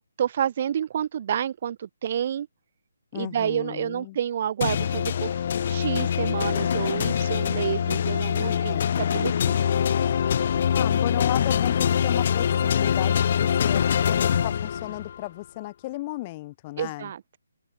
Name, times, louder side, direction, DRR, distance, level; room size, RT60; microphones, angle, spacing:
voice 1, 0.0-2.5 3.1-5.4 5.7-9.6 16.8-17.4, right 9 dB, 40° right, 7.3 m, -29 dB
voice 2, 3.1-4.2 8.4-9.3 10.7-17.1, left 19 dB, 25° left, 8.0 m, -35 dB
sound 1, 4.6-15.2, left 8 dB, 45° left, 2.1 m, -24 dB
open air
figure-of-eight pair, 140°, 0 cm